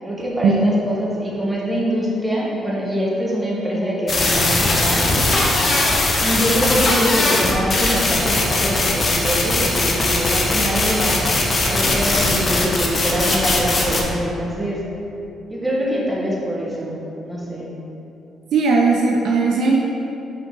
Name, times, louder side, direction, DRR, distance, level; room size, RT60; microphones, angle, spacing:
voice 1, 0.0-5.1 5.6-5.8 6.2-11.3 11.6-14.8 15.5-17.7, equal, 10° right, -4 dB, 1.4 m, -24 dB
sound 1, 4.1-14.0, left 2 dB, 40° left, 1.0 m, -19 dB
voice 2, 18.5-19.8, right 4 dB, 75° right, -1 dB, 0.5 m, -17 dB
5.8 x 5.2 x 3.7 m, 2.9 s
cardioid pair, 90°, 0 cm